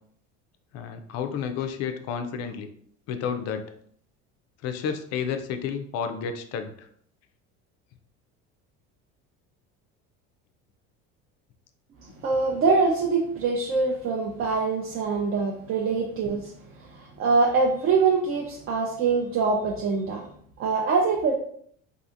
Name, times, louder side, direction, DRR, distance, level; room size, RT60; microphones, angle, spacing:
voice 1, 0.7-2.7 3.1-3.7 4.6-6.9, left 7 dB, 55° left, 8 dB, 0.4 m, -31 dB
voice 2, 12.2-16.5 16.9-20.2 20.6-21.3, right 4 dB, 45° right, -1 dB, 0.5 m, -24 dB
2.7 x 2.5 x 2.4 m, 0.63 s
supercardioid pair, 110°, 31 cm